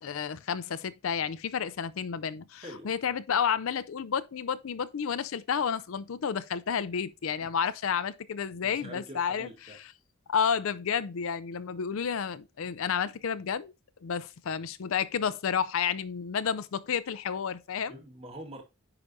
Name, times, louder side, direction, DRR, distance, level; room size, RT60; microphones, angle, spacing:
voice 1, 0.0-9.8 10.3-13.7 14.0-18.0, left 7 dB, 70° left, 0.4 m, -31 dB
voice 2, 8.6-9.8 17.9-18.6, right 1 dB, 25° right, 1.6 m, -45 dB
9.8 x 4.8 x 2.7 m
head